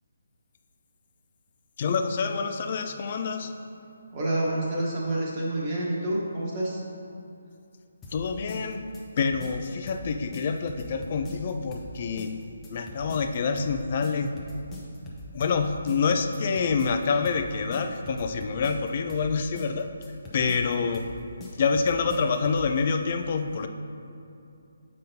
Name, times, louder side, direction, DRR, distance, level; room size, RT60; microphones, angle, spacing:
voice 1, 1.8-3.5 8.1-8.8 9.2-12.4 12.7-14.3 15.3-19.9 20.3-21.1 21.6-23.7, left 5 dB, 40° left, 7 dB, 0.4 m, -27 dB
voice 2, 4.1-6.8, right 1 dB, 30° right, -5 dB, 1.3 m, -28 dB
sound 1, 8.0-22.7, left 1 dB, 10° left, 0.7 m, -42 dB
7.5 x 5.3 x 2.8 m, 2.7 s
hypercardioid pair, 160°, 0 cm